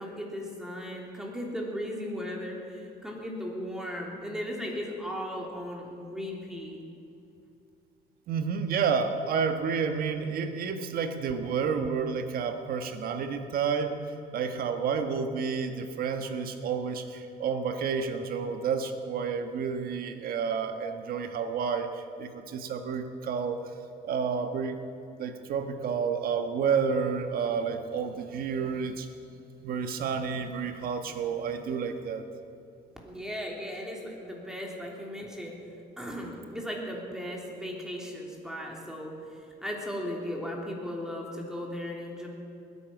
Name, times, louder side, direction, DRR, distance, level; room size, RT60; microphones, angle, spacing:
voice 1, 0.0-6.8 33.0-35.6 36.0-42.3, equal, 5° right, -1 dB, 3.1 m, -37 dB
voice 2, 8.3-13.9 14.3-23.6 24.0-24.8 25.2-29.1 29.6-32.3, right 6 dB, 60° right, 7 dB, 1.3 m, -30 dB
20.5 x 9.8 x 6.1 m, 2.5 s
cardioid pair, 110°, 17 cm